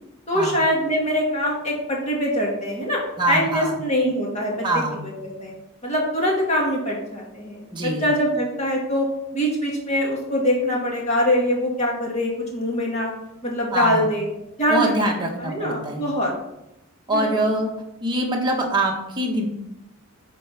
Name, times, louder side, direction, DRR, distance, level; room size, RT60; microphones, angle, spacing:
voice 1, 0.3-3.0 3.3-5.5 5.8-9.1 9.3-13.1 13.4-14.3 14.6-15.1 15.4-16.3 17.1-17.2, equal, 30° left, -2 dB, 2.4 m, -23 dB
voice 2, 3.2-3.8 4.6-5.0 7.7-8.1 13.7-14.1 14.7-16.0 17.1-17.7 18.0-19.5, right 1 dB, 20° right, -1 dB, 1.5 m, -24 dB
8.9 x 4.5 x 5.9 m, 0.86 s
head